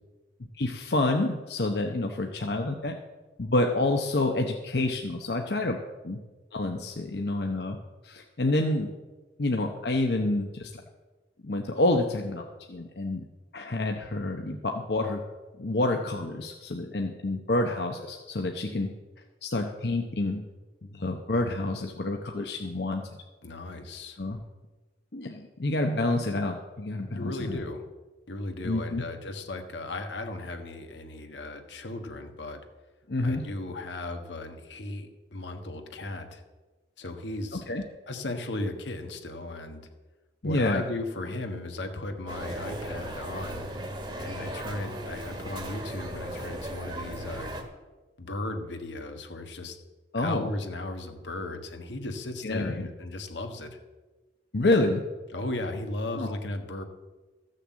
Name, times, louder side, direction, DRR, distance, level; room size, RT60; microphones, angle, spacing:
voice 1, 0.6-3.0 3.4-5.8 6.0-6.2 6.5-7.8 8.0-8.9 9.4-10.8 11.4-13.2 13.5-15.2 15.6-18.9 19.4-20.4 20.8-23.0 24.2-24.4 25.1-27.6 28.6-29.0 33.1-33.4 37.5-37.8 40.4-40.8 50.1-50.5 52.4-52.9 54.5-55.0 56.1-56.4, left 2 dB, 65° left, 3 dB, 0.9 m, -28 dB
voice 2, 23.4-24.2 27.1-27.9 28.3-32.6 33.2-36.4 37.0-37.6 38.1-39.9 40.4-43.7 44.2-47.5 48.2-49.8 50.1-53.8 55.3-56.8, left 2 dB, 85° left, 5 dB, 1.5 m, -36 dB
sound 1, 42.3-47.6, right 1 dB, 25° right, 1.5 m, -37 dB
14.5 x 6.6 x 7.5 m, 1.2 s
head